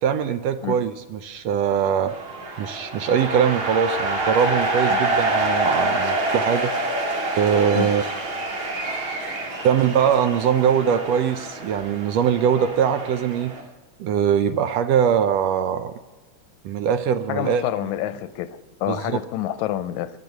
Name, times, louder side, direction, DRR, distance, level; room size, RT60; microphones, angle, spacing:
voice 1, 0.0-2.1 2.6-6.7 7.4-8.0 9.6-13.6 14.0-15.9 16.6-17.6 18.9-19.2, right 8 dB, 75° right, 1.6 m, -22 dB
sound 1, 2.1-13.6, right 2 dB, 55° right, 3.2 m, -26 dB
voice 2, 17.3-20.1, left 13 dB, 85° left, 2.0 m, -28 dB
22.5 x 10.0 x 5.9 m
omnidirectional pair, 3.3 m